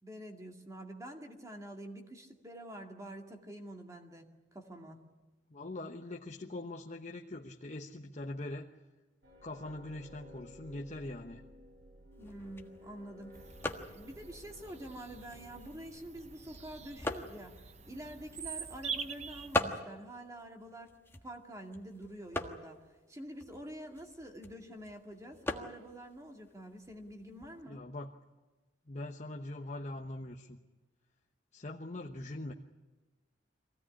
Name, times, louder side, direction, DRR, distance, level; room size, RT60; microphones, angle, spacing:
voice 1, 0.0-4.3 4.5-5.0 12.2-13.4 13.9-20.9 21.2-22.8 23.1-27.8, right 1 dB, 20° right, 3 dB, 2.3 m, -47 dB
voice 2, 5.5-8.7 9.4-11.4 27.3-28.1 28.9-30.6 31.5-32.5, left 2 dB, 40° left, 1 dB, 1.1 m, -42 dB
sound 1, 9.2-15.8, equal, 80° right, 3.9 m, -55 dB
sound 2, 12.1-27.6, left 1 dB, 15° left, 1.5 m, -43 dB
Bird vocalization bird call bird song, 13.3-19.6, right 6 dB, 40° right, 0.9 m, -45 dB
23.5 x 17.0 x 9.9 m, 1.2 s
head